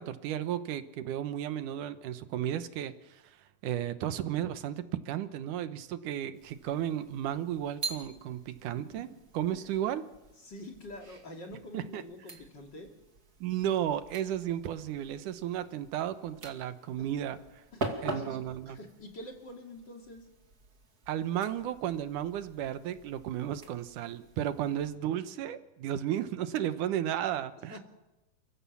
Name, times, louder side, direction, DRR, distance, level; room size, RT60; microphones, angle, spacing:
voice 1, 0.0-3.4 3.6-9.1 9.3-10.0 11.7-12.0 13.4-17.4 18.0-18.8 21.1-27.8, right 11 dB, 80° right, 11 dB, 2.6 m, -34 dB
sound 1, 6.3-25.0, right 3 dB, 30° right, 2.6 m, -45 dB
voice 2, 8.8-9.1 9.5-9.6 10.4-12.9 17.0-17.1 17.7-18.4 18.7-20.3 27.7-27.8, left 1 dB, 35° left, 2 dB, 2.9 m, -46 dB
29.5 x 15.5 x 7.2 m, 0.99 s
omnidirectional pair, 3.6 m